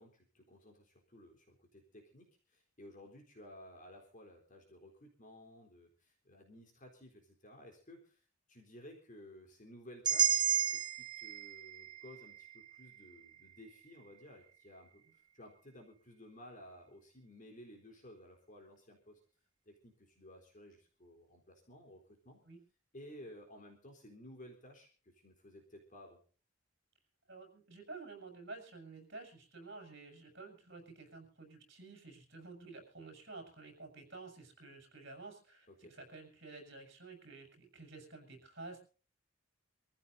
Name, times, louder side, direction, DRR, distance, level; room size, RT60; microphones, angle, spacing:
voice 1, 0.0-19.2 19.7-22.4 22.9-26.2 35.7-35.9, left 1 dB, 40° left, 1 dB, 3.9 m, -56 dB
sound 1, 10.0-14.1, right 8 dB, 25° right, 1.3 m, -34 dB
voice 2, 27.3-38.8, right 3 dB, 60° right, 3 dB, 6.9 m, -51 dB
27.0 x 15.0 x 2.7 m, 0.38 s
head